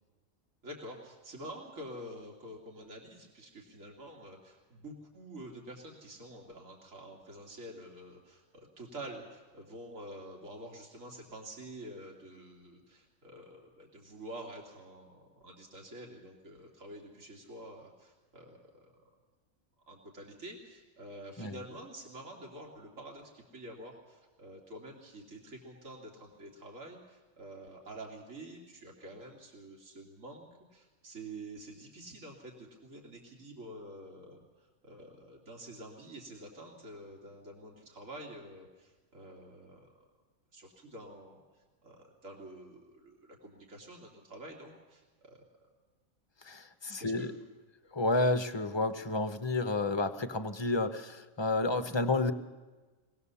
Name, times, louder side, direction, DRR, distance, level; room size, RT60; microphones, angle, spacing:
voice 1, 0.6-18.9 19.9-39.9 40.5-41.4 41.8-45.4 47.0-47.4, right 1 dB, 70° right, -1 dB, 3.0 m, -48 dB
voice 2, 46.4-47.3 47.9-52.3, left 2 dB, 25° left, 9 dB, 0.8 m, -30 dB
23.5 x 18.5 x 7.0 m, 1.3 s
omnidirectional pair, 1.4 m